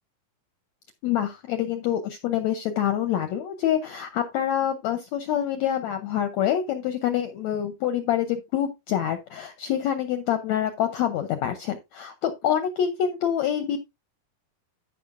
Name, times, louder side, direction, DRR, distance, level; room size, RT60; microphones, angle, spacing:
voice 1, 1.0-13.8, left 10 dB, 80° left, 8 dB, 1.6 m, -26 dB
14.0 x 5.8 x 2.5 m, 0.23 s
omnidirectional pair, 4.1 m